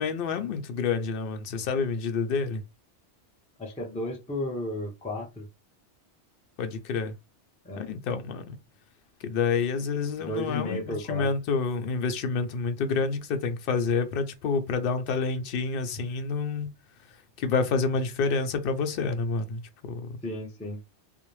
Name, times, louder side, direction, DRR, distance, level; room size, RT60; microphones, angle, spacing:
voice 1, 0.0-2.6 6.6-7.1 7.8-8.6 9.2-16.7 17.4-19.6 19.9-20.1, left 5 dB, 60° left, 0.7 m, -28 dB
voice 2, 3.6-5.5 7.6-7.8 10.2-11.3 20.2-20.8, left 1 dB, 10° left, 0.4 m, -33 dB
2.5 x 2.0 x 3.0 m
omnidirectional pair, 1.2 m